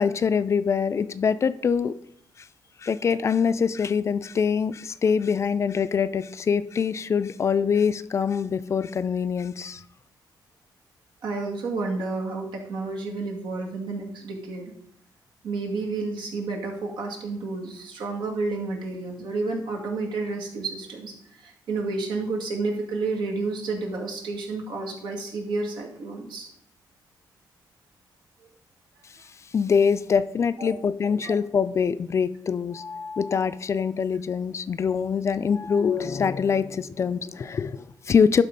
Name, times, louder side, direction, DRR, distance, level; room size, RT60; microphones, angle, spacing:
voice 1, 0.0-1.9 2.4-2.5 2.8-9.8 29.5-38.4, left 6 dB, 40° left, 14 dB, 0.4 m, -24 dB
voice 2, 11.2-14.7 15.4-26.5 30.6-30.7 31.2-31.3, right 3 dB, 80° right, 0 dB, 2.1 m, -30 dB
11.5 x 4.0 x 5.3 m, 0.70 s
cardioid pair, 125°, 8 cm